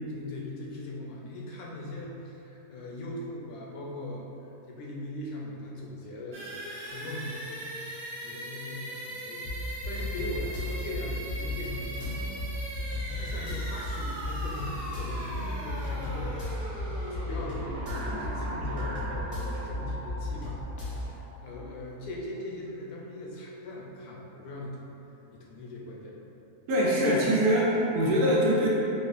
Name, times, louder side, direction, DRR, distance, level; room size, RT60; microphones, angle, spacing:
voice 1, 0.1-6.4 6.8-7.7 8.2-16.4 17.1-21.1 21.4-24.9 25.3-26.2, left 1 dB, 75° left, -3 dB, 1.1 m, -40 dB
sound 1, 6.3-20.0, right 1 dB, 40° right, 1.2 m, -40 dB
sound 2, 9.4-21.2, left 1 dB, 45° left, 0.5 m, -35 dB
sound 3, 17.1-21.8, right 1 dB, 65° right, 0.9 m, -41 dB
voice 2, 26.7-28.7, equal, 85° right, -5 dB, 1.3 m, -23 dB
4.8 x 2.2 x 2.5 m, 3.0 s
omnidirectional pair, 1.7 m